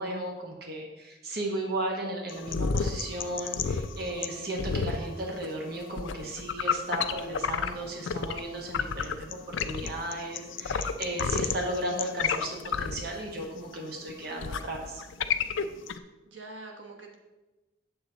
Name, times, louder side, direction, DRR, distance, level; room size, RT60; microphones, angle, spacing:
voice 1, 0.0-15.0, right 1 dB, 55° right, 0 dB, 1.2 m, -35 dB
sound 1, 2.3-8.4 8.7-16.0, left 6 dB, 85° left, 0.5 m, -31 dB
voice 2, 15.9-17.1, right 2 dB, 85° right, 1 dB, 1.3 m, -46 dB
8.3 x 7.1 x 3.9 m, 1.1 s
head